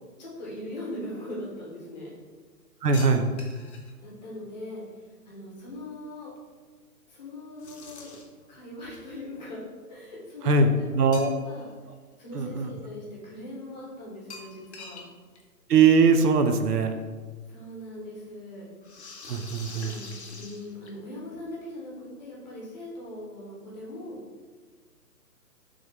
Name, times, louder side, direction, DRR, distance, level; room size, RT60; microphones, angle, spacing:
voice 1, 0.2-2.1 4.0-6.3 7.1-8.1 8.5-10.9 11.1-11.7 12.2-15.0 17.5-18.7 19.8-24.2, left 1 dB, 25° left, -5 dB, 1.0 m, -40 dB
voice 2, 2.8-3.3 10.4-11.3 12.3-12.7 15.7-17.0 19.3-20.0, right 4 dB, 75° right, 6 dB, 0.6 m, -21 dB
sound 1, 2.9-3.9 7.6-8.4 11.1-11.7 12.1-12.2 14.3-15.1 15.3-15.4 15.7-15.8 17.0-17.1 18.8-21.2, left 3 dB, 45° left, 0.6 m, -44 dB
3.5 x 3.4 x 3.4 m, 1.4 s
hypercardioid pair, 150°, 47 cm